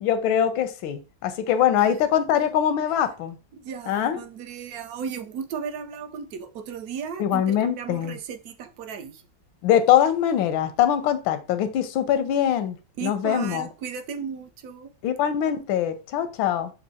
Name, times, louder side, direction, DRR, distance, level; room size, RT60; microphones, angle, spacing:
voice 1, 0.0-3.4 3.9-4.2 7.2-8.2 9.6-13.7 15.0-16.7, left 10 dB, 85° left, 1.4 m, -23 dB
voice 2, 3.5-9.2 13.0-14.9, right 7 dB, 65° right, 0.9 m, -35 dB
6.5 x 2.7 x 2.7 m
omnidirectional pair, 2.1 m